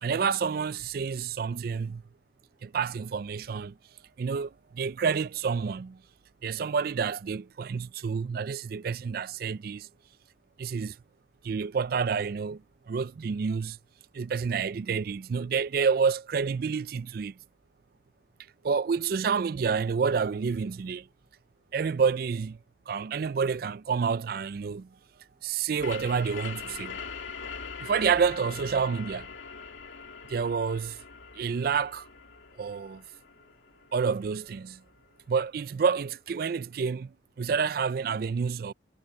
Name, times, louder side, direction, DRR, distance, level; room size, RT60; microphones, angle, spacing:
voice 1, 0.0-2.0 2.6-3.8 4.2-6.0 6.4-9.9 10.6-11.0 11.4-13.8 14.1-17.4 18.6-21.1 21.7-22.6 22.9-24.9 25.4-27.0 27.8-29.3 30.3-31.0 31.3-32.1 32.6-33.0 33.9-34.8 35.3-38.7, right 6 dB, 50° right, 0.3 m, -29 dB
sound 1, 25.8-35.2, left 5 dB, 90° left, 2.1 m, -42 dB
head